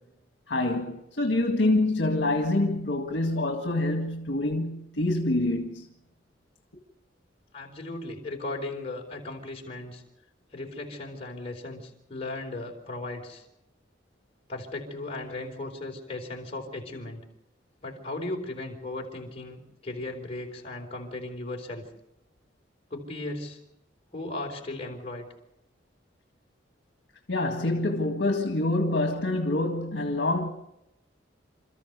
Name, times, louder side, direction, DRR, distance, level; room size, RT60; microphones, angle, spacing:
voice 1, 0.5-5.9 27.3-30.5, left 2 dB, 70° left, 1.9 m, -26 dB
voice 2, 7.5-10.0 10.5-13.4 14.5-17.2 17.8-21.8 22.9-23.6 24.1-25.3, left 2 dB, 35° left, 4.2 m, -36 dB
27.5 x 14.5 x 6.8 m
head